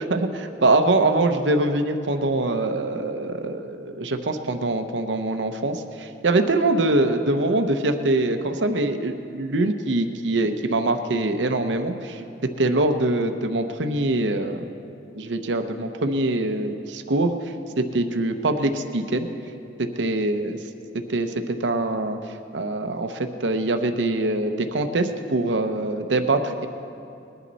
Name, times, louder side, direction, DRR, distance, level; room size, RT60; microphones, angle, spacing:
voice 1, 0.1-12.2 12.6-14.6 15.2-17.3 17.8-19.3 19.8-20.6 21.1-21.3 21.6-22.2 22.5-26.7, right 2 dB, 85° right, 7 dB, 0.8 m, -23 dB
20.5 x 10.5 x 4.1 m, 2.7 s
head